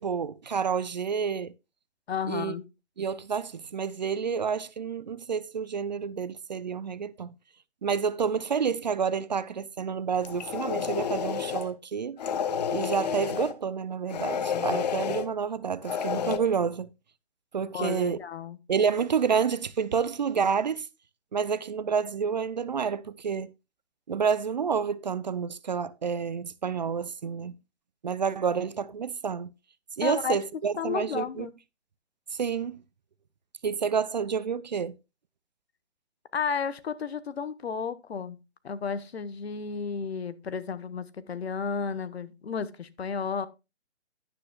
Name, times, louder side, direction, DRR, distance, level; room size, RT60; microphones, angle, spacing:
voice 1, 0.0-1.5 2.3-2.5 3.0-7.3 7.8-12.2 12.7-16.9 17.5-18.2 18.7-20.9 21.3-23.5 24.1-27.6 28.0-29.5 30.0-31.5 32.3-32.8 33.6-35.0, right 6 dB, 40° right, 0.4 m, -29 dB
voice 2, 2.1-2.6 17.7-18.6 30.0-30.4 30.8-31.5 36.3-38.4 38.6-43.5, left 6 dB, 65° left, 1.1 m, -32 dB
sound 1, 10.2-11.7 12.2-13.5 14.1-15.3 15.8-16.4, left 7 dB, 35° left, 0.9 m, -30 dB
12.0 x 10.0 x 2.3 m
hypercardioid pair, 150°, 34 cm